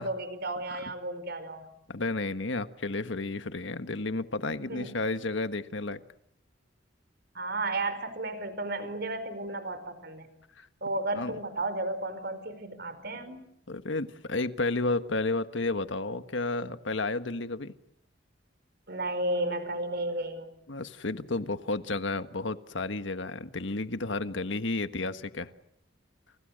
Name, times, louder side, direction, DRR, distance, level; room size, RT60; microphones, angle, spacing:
voice 1, 0.0-1.7 4.6-4.9 7.3-10.3 10.8-13.4 18.9-20.5, right 2 dB, 60° right, 12 dB, 4.9 m, -33 dB
voice 2, 1.9-6.0 10.6-10.7 11.1-11.3 13.7-17.7 20.7-25.5, left 3 dB, 80° left, 10 dB, 1.6 m, -32 dB
30.0 x 29.5 x 6.6 m, 0.77 s
head